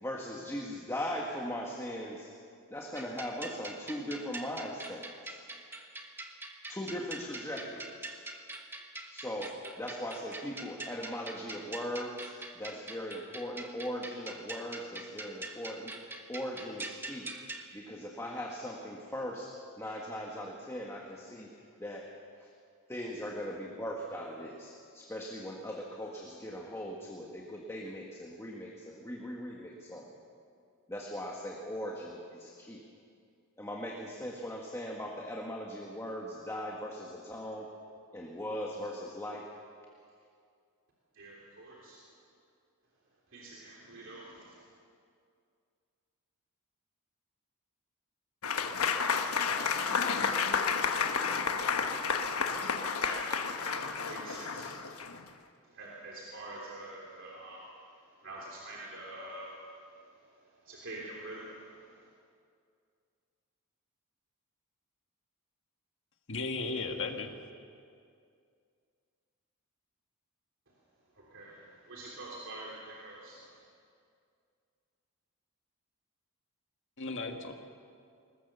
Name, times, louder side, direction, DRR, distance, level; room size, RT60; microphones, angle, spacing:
voice 1, 0.0-2.3 2.7-5.4 6.7-8.1 9.1-15.9 16.3-17.3 17.7-19.5 19.8-21.5 21.8-22.1 22.4-22.5 22.9-30.1 30.9-32.8 33.6-37.7 38.1-39.5, equal, 10° left, -1 dB, 1.7 m, -39 dB
sound 1, 3.0-17.7, right 2 dB, 10° right, 1.3 m, -44 dB
voice 2, 41.1-42.0 43.3-44.7 53.0-54.7 55.6-60.1 60.6-62.1 71.2-73.6, right 2 dB, 60° right, -4 dB, 3.4 m, -46 dB
Applause / Crowd, 48.4-55.2, left 5 dB, 75° left, 1.2 m, -31 dB
voice 3, 66.3-67.3 77.0-77.5, left 3 dB, 55° left, 4 dB, 1.8 m, -35 dB
21.5 x 19.5 x 6.9 m, 2.3 s
head